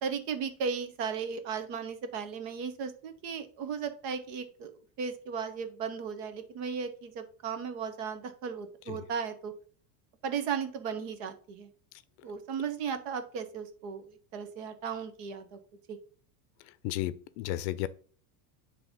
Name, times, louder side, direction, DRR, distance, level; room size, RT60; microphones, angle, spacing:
voice 1, 0.0-4.7 5.0-9.5 10.2-11.7 12.2-15.6 15.9-16.0, right 6 dB, 60° right, 1.4 m, -36 dB
voice 2, 16.8-17.9, left 15 dB, 50° left, 0.5 m, -33 dB
9.7 x 3.4 x 5.3 m
supercardioid pair, 165°, 44 cm